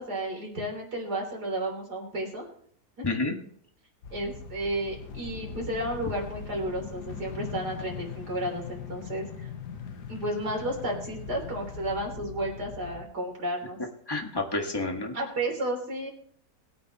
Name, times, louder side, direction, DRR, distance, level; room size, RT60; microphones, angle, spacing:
voice 1, 0.0-2.5 3.0-3.1 4.1-9.5 10.1-13.8 15.1-16.1, right 1 dB, 75° right, 0 dB, 4.0 m, -32 dB
voice 2, 3.0-3.3 14.1-15.1, left 2 dB, 15° left, 2 dB, 1.7 m, -29 dB
sound 1, 4.0-13.1, left 6 dB, 85° left, 1.7 m, -40 dB
21.0 x 8.8 x 3.0 m, 0.64 s
omnidirectional pair, 1.7 m